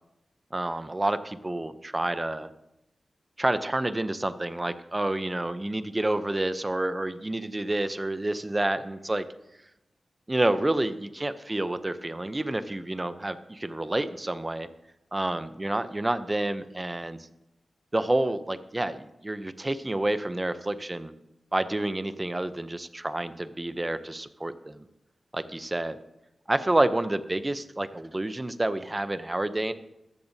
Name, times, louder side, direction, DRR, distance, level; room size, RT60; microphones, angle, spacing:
voice 1, 0.5-2.5 3.4-9.2 10.3-14.7 15.1-17.3 17.9-21.1 21.5-24.9 25.3-26.0 26.5-29.7, right 1 dB, 20° right, 12 dB, 0.6 m, -29 dB
14.0 x 13.0 x 2.7 m, 0.90 s
wide cardioid pair, 120°, 0 cm